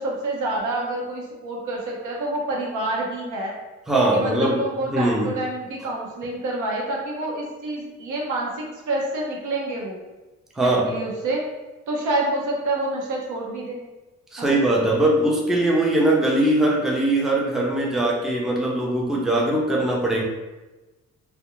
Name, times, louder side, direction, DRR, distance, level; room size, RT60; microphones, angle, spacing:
voice 1, 0.0-3.5 4.1-10.0 10.6-11.4 11.9-13.8 14.4-14.5, right 2 dB, 80° right, -2 dB, 0.7 m, -28 dB
voice 2, 3.9-4.6 4.9-5.3 10.6-10.9 14.3-20.2, right 1 dB, ahead, -3 dB, 0.5 m, -21 dB
2.3 x 2.1 x 2.9 m, 1.1 s
cardioid pair, 90°, 30 cm